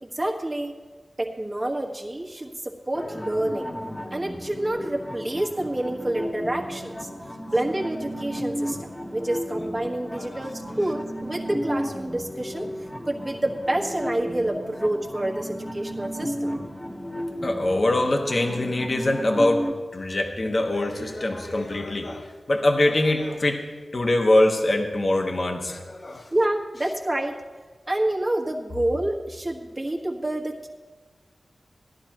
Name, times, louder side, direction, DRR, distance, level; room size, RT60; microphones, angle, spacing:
voice 1, 0.0-0.7 1.2-3.7 4.1-7.1 7.5-16.5 26.3-27.4 27.9-30.7, right 1 dB, 25° right, 0 dB, 1.5 m, -28 dB
sound 1, 2.9-19.7, equal, 15° left, 1.3 m, -34 dB
voice 2, 17.4-19.6 19.9-23.6 23.9-26.2, left 1 dB, 45° left, 2 dB, 1.3 m, -23 dB
17.0 x 11.5 x 3.0 m, 1.4 s
wide cardioid pair, 95°, 0 cm